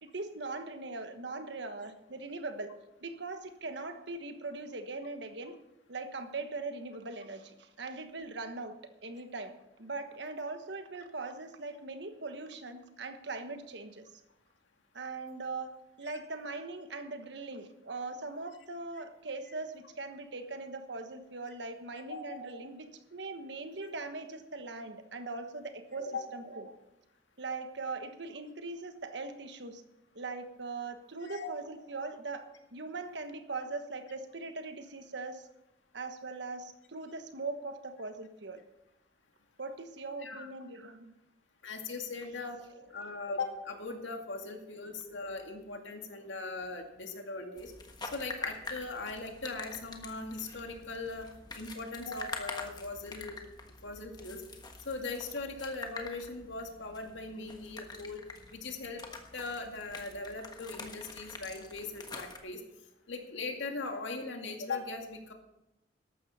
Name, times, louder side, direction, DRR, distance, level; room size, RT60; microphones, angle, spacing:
voice 1, 0.0-2.7 3.0-5.6 5.9-9.5 9.8-14.1 14.9-26.7 27.4-29.8 30.1-35.5 35.9-38.6 39.6-41.1 42.4-42.9, right 3 dB, 75° right, 8 dB, 1.3 m, -41 dB
voice 2, 22.1-22.4 26.1-26.2 31.2-31.5 40.2-40.5 41.6-42.6 42.9-47.7 48.1-51.3 51.5-53.4 53.8-54.4 54.9-58.2 58.5-59.0 59.3-62.6 63.1-65.3, left 3 dB, 85° left, 3 dB, 2.2 m, -39 dB
sound 1, 47.6-62.4, left 3 dB, 20° left, 1.3 m, -46 dB
14.0 x 12.0 x 4.3 m, 0.92 s
head